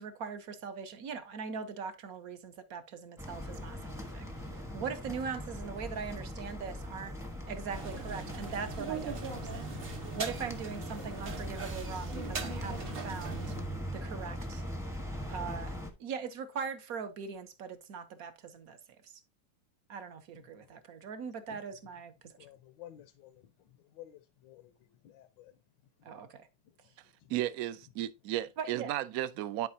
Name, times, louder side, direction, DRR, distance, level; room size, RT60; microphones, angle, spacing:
voice 1, 0.0-7.1 7.5-9.7 10.1-13.5 13.9-14.6 15.3-18.8 19.0-19.1 19.9-22.3 26.0-26.5 28.6-28.9, right 6 dB, 55° right, 1.2 m, -41 dB
sound 1, 3.2-15.9, equal, ahead, 0.7 m, -40 dB
sound 2, 7.7-13.6, right 5 dB, 40° right, 0.8 m, -41 dB
voice 2, 20.3-20.7 21.5-21.6 22.4-25.5 26.6-26.7 27.2-27.3, left 12 dB, 75° left, 1.3 m, -54 dB
voice 3, 27.3-29.7, right 14 dB, 75° right, 0.8 m, -34 dB
11.0 x 4.8 x 2.7 m
omnidirectional pair, 2.2 m